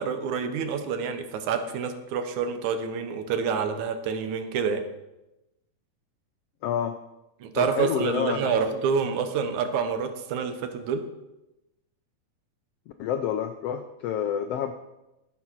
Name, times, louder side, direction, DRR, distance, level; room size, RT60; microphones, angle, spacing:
voice 1, 0.0-4.8 7.4-11.0, right 6 dB, 75° right, 8 dB, 2.3 m, -27 dB
voice 2, 6.6-7.0 7.5-8.6 13.0-14.7, left 8 dB, 80° left, 7 dB, 1.4 m, -28 dB
13.0 x 7.1 x 6.1 m, 0.96 s
omnidirectional pair, 3.5 m